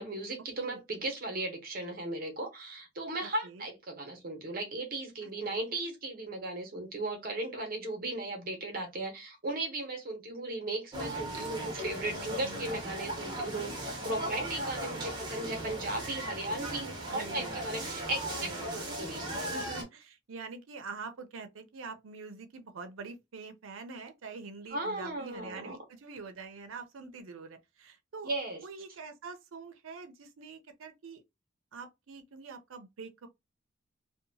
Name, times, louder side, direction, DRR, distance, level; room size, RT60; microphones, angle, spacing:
voice 1, 0.0-19.5 24.7-25.8 28.2-28.6, right 2 dB, 45° right, 0.8 m, -36 dB
voice 2, 3.2-3.7 5.2-5.3 12.1-13.1 14.6-14.7 17.1-17.9 18.3-28.3 28.6-31.2 31.7-33.3, right 4 dB, 85° right, 0.5 m, -46 dB
sound 1, 10.9-19.8, right 1 dB, 20° right, 0.8 m, -37 dB
2.7 x 2.2 x 2.7 m
head